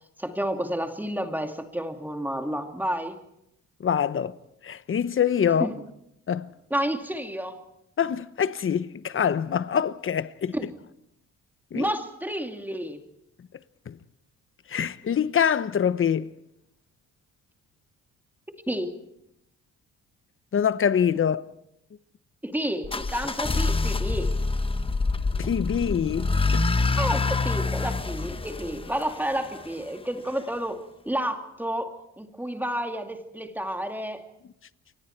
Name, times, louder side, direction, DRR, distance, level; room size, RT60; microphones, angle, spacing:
voice 1, 0.2-3.2 5.5-5.8 6.7-7.6 10.5-10.7 11.7-13.0 18.7-18.9 22.4-24.3 27.0-34.2, equal, 5° right, 2.5 m, -30 dB
voice 2, 3.8-4.3 4.6-5.7 6.3-6.5 8.0-10.5 11.7-11.9 13.9-14.0 14.7-16.3 20.5-21.4 25.4-26.7, left 8 dB, 45° left, 1.0 m, -25 dB
sound 1, 22.8-29.7, left 3 dB, 20° left, 1.0 m, -26 dB
29.0 x 24.0 x 4.6 m
cardioid pair, 90°, 30 cm